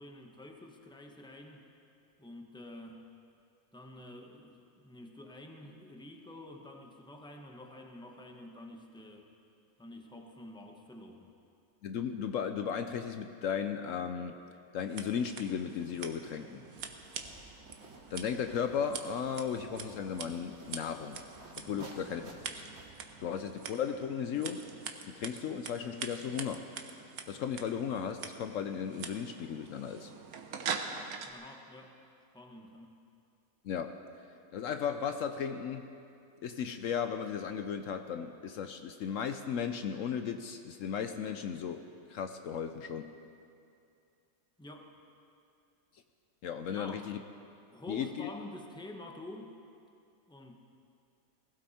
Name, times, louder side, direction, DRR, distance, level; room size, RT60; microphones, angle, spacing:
voice 1, 0.0-1.6 2.2-3.0 3.7-9.3 9.8-11.3 21.7-22.0 31.2-32.0 32.3-33.0 44.6-44.9 46.7-47.1 47.7-49.6 50.3-50.6, left 1 dB, 5° left, 2 dB, 1.1 m, -48 dB
voice 2, 11.8-14.3 14.7-16.6 18.1-21.2 21.6-22.3 23.2-24.6 25.1-26.6 27.3-30.1 33.6-34.0 34.5-35.9 36.4-41.8 42.1-43.1 46.4-47.2 47.9-48.3, left 7 dB, 70° left, 7 dB, 1.0 m, -35 dB
Scissors, 14.8-31.3, right 6 dB, 85° right, 1.4 m, -44 dB
sound 1, 16.8-23.1, right 2 dB, 50° right, 1.7 m, -54 dB
20.0 x 15.5 x 4.3 m, 2.5 s
omnidirectional pair, 1.5 m